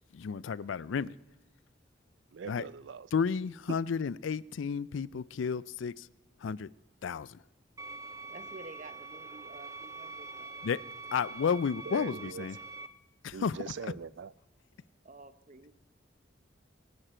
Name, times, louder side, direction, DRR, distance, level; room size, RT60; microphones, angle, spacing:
voice 1, 0.1-1.1 2.4-2.7 3.1-6.1 6.4-6.7 7.0-7.4 10.6-10.8 11.1-12.6 13.2-13.9, left 6 dB, 80° left, 0.4 m, -32 dB
voice 2, 2.3-3.1 11.9-12.5 13.3-14.3, right 6 dB, 70° right, 0.4 m, -42 dB
sound 1, 7.8-12.9, right 3 dB, 15° right, 0.6 m, -44 dB
voice 3, 8.0-10.6 15.0-15.7, right 2 dB, 40° right, 0.9 m, -51 dB
22.5 x 10.0 x 4.4 m
head